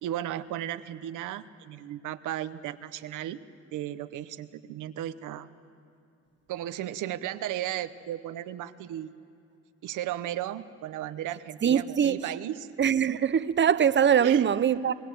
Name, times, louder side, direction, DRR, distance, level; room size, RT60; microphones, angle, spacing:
voice 1, 0.0-3.4 3.7-5.5 6.5-9.1 9.8-12.7 14.2-14.4, right 12 dB, 90° right, 1.0 m, -35 dB
voice 2, 11.6-12.3 12.8-14.9, right 8 dB, 40° right, 0.7 m, -22 dB
27.0 x 21.5 x 7.8 m
cardioid pair, 90°, 30 cm